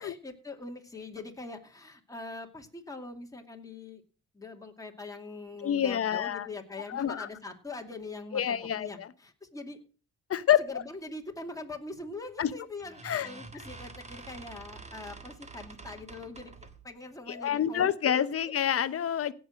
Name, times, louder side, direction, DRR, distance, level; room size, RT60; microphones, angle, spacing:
voice 1, 0.0-4.0 4.3-9.8 10.6-18.5, left 3 dB, 10° left, 2 dB, 2.3 m, -43 dB
voice 2, 5.6-6.5 6.9-7.3 8.3-9.1 10.3-10.8 12.4-12.5 13.0-13.3 17.3-19.3, left 9 dB, 50° left, 14 dB, 0.9 m, -28 dB
sound 1, 12.0-12.3 12.8-16.9, right 3 dB, 20° right, 1.6 m, -47 dB
17.0 x 6.2 x 6.3 m, 0.38 s
cardioid pair, 90°, 30 cm